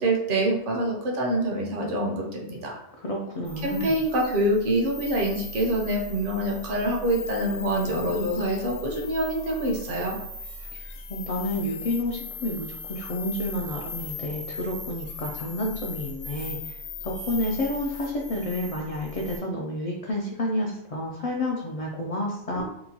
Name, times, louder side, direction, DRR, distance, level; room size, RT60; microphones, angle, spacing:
voice 1, 0.0-2.8 3.6-10.2 22.6-22.7, right 1 dB, 55° right, -1 dB, 0.7 m, -26 dB
voice 2, 3.0-4.0 11.1-16.8 17.0-22.6, left 1 dB, 70° left, -2 dB, 0.3 m, -30 dB
sound 1, 3.4-19.4, left 3 dB, 85° left, 1.0 m, -38 dB
2.9 x 2.2 x 2.7 m, 0.77 s
omnidirectional pair, 1.1 m